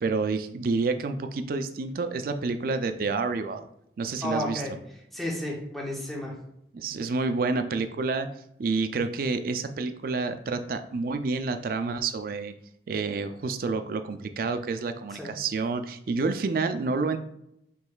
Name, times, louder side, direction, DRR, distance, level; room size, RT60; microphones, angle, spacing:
voice 1, 0.0-3.6 4.0-4.8 6.7-8.3 8.6-12.5 12.9-17.2, right 4 dB, 55° right, 8 dB, 0.4 m, -29 dB
voice 2, 4.2-4.7 5.1-6.4 15.1-15.3, left 1 dB, ahead, -3 dB, 0.7 m, -32 dB
6.0 x 3.1 x 2.3 m, 0.77 s
head